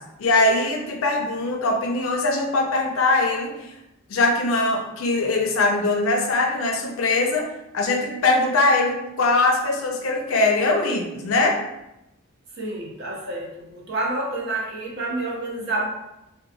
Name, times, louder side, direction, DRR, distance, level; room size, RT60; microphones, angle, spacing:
voice 1, 0.2-3.7 4.1-7.4 7.7-11.6, left 2 dB, 70° left, 2 dB, 0.5 m, -21 dB
voice 2, 12.6-15.9, right 2 dB, 50° right, -3 dB, 0.7 m, -28 dB
3.1 x 2.2 x 2.7 m, 0.89 s
head